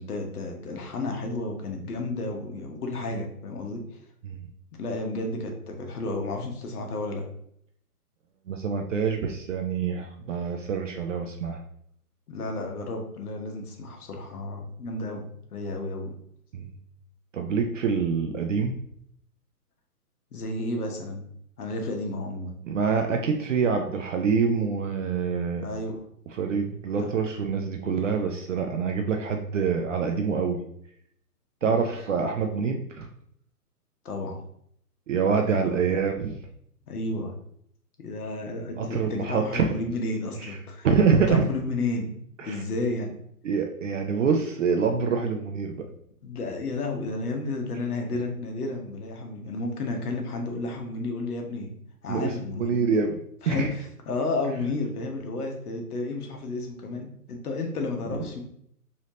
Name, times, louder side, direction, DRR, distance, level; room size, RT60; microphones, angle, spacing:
voice 1, 0.0-4.0 4.8-7.2 12.3-16.1 20.3-21.2 21.6-22.5 25.6-26.0 27.0-27.1 31.6-31.8 34.0-34.4 35.5-36.0 36.9-37.3 38.0-40.9 41.3-42.1 42.4-43.1 46.2-51.7 52.0-52.8 53.4-58.4, left 2 dB, 70° left, 2 dB, 1.0 m, -32 dB
voice 2, 8.5-11.6 16.5-16.7 17.3-18.7 22.6-25.7 26.3-30.6 31.6-33.1 35.1-36.3 38.8-39.7 40.8-41.5 42.4-42.6 43.4-45.9 52.1-53.2 53.4-53.7, right 5 dB, 55° right, 4 dB, 0.5 m, -26 dB
3.2 x 2.8 x 2.7 m, 0.70 s
hypercardioid pair, 145°, 46 cm